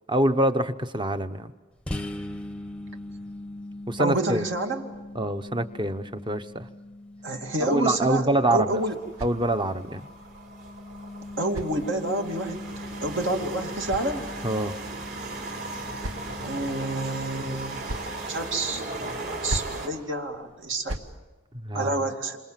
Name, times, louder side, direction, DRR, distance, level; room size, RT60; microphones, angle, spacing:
voice 1, 0.1-1.5 3.9-4.5 5.1-6.7 7.6-8.8 9.2-10.1 14.4-14.7 21.5-22.1, right 1 dB, 20° right, 9 dB, 1.0 m, -25 dB
sound 1, 1.9-19.4, left 1 dB, 5° left, 0.9 m, -41 dB
voice 2, 4.0-4.8 7.2-9.0 11.4-12.6 13.0-14.3 16.4-17.8 18.3-18.8 19.4-21.0 21.7-22.4, right 2 dB, 60° right, 3 dB, 2.5 m, -28 dB
sound 2, 8.3-9.9 10.9-12.4 13.4-14.7 15.5-16.6 17.5-18.2 19.2-19.9 20.6-21.2, right 1 dB, 75° right, 1.3 m, -39 dB
sound 3, 8.4-19.9, right 2 dB, 45° right, 3.8 m, -37 dB
28.5 x 26.5 x 7.5 m, 1.2 s
head